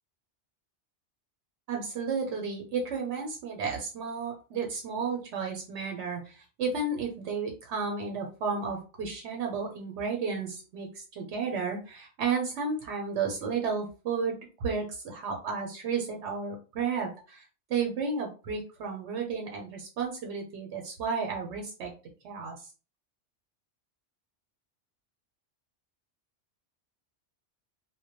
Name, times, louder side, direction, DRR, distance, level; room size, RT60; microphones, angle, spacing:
voice 1, 1.7-14.3 14.6-17.4 17.7-21.9 22.2-22.5, right 5 dB, 75° right, 1 dB, 0.9 m, -32 dB
2.2 x 2.1 x 2.8 m, 0.34 s
omnidirectional pair, 1.2 m